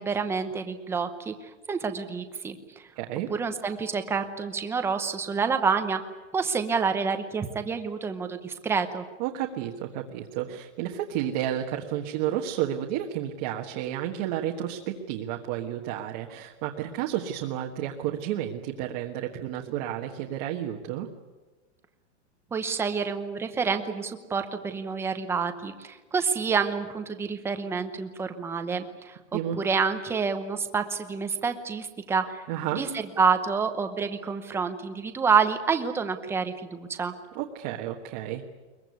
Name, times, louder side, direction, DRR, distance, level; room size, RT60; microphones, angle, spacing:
voice 1, 0.0-1.3 1.7-2.6 3.3-6.0 6.3-9.0 22.5-32.4 32.8-32.9 33.2-37.1, right 5 dB, 5° right, 8 dB, 0.9 m, -28 dB
voice 2, 3.0-3.3 9.2-21.1 29.3-29.6 32.5-32.8 37.3-38.4, right 11 dB, 35° right, 1 dB, 1.5 m, -31 dB
22.5 x 21.5 x 9.5 m, 1.2 s
supercardioid pair, 170°, 36 cm